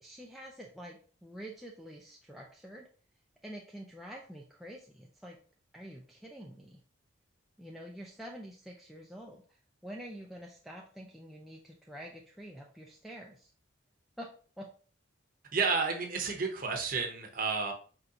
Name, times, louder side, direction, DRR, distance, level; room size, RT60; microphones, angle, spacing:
voice 1, 0.0-2.9 3.4-5.4 5.7-6.8 7.6-13.5 14.2-14.3 14.6-14.7, equal, ahead, -2 dB, 0.3 m, -47 dB
voice 2, 15.5-17.7, right 4 dB, 45° right, 3 dB, 0.8 m, -31 dB
4.4 x 3.9 x 2.8 m, 0.42 s
head